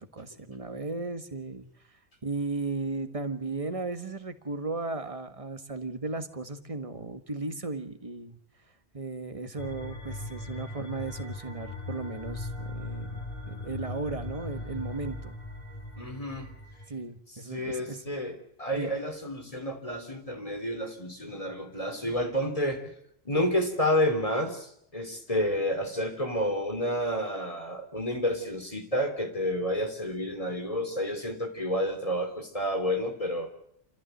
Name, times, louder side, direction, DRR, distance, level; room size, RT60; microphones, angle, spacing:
voice 1, 0.0-1.7 2.2-8.4 8.9-13.1 13.5-15.4 16.9-18.0 18.7-18.9, right 3 dB, 35° right, 8 dB, 1.6 m, -35 dB
sound 1, 9.6-16.9, left 2 dB, 60° left, 4.0 m, -39 dB
voice 2, 16.0-16.5 17.5-22.9 23.3-33.5, equal, 35° left, 5 dB, 3.3 m, -30 dB
27.5 x 14.5 x 9.2 m, 0.75 s
omnidirectional pair, 1.0 m